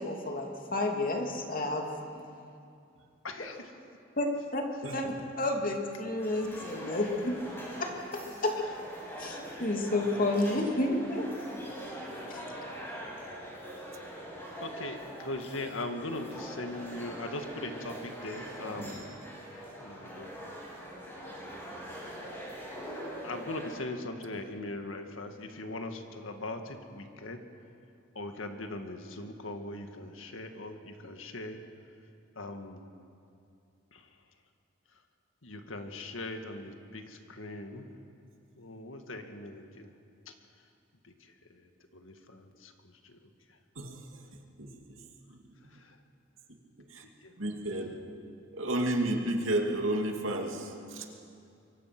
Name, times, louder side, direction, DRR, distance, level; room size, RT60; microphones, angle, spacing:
voice 1, 0.0-1.9 3.4-3.5 4.2-4.6 4.9-7.4 7.8-8.6 9.2-11.3 12.3-12.5, left 2 dB, 45° left, 2 dB, 2.7 m, -31 dB
voice 2, 3.2-3.7 6.8-7.1 14.6-19.1 19.5-20.3 23.2-27.4 28.2-31.6 32.4-32.8 33.9-34.1 35.4-37.9 38.6-39.9 40.3-40.4 41.0-43.2 45.7-46.0 47.2-47.3, left 2 dB, 90° left, 6 dB, 1.9 m, -40 dB
voice 3, 4.8-5.1 43.8-44.2 44.6-45.0 45.3-45.4 46.9-47.0 47.4-47.9 48.5-51.1, right 1 dB, 85° right, 2 dB, 2.6 m, -32 dB
sound 1, 6.2-23.8, equal, 10° left, 6.8 m, -43 dB
25.0 x 23.5 x 6.1 m, 2.5 s
head